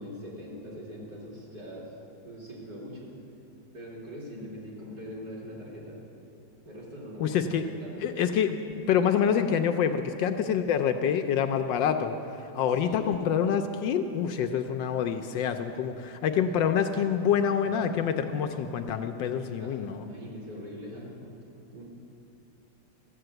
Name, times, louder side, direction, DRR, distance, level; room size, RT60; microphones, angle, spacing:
voice 1, 0.0-1.9 2.2-3.1 3.7-6.0 6.6-8.0 12.5-13.3 16.9-17.1 17.6-17.7 18.7-18.9 19.1-19.2 19.6-21.4 21.7-21.8, equal, 45° right, -5 dB, 3.3 m, -42 dB
voice 2, 7.2-7.6 8.0-12.2 12.5-20.0, left 8 dB, 75° left, 7 dB, 1.2 m, -26 dB
14.0 x 8.2 x 7.8 m, 2.8 s
omnidirectional pair, 2.3 m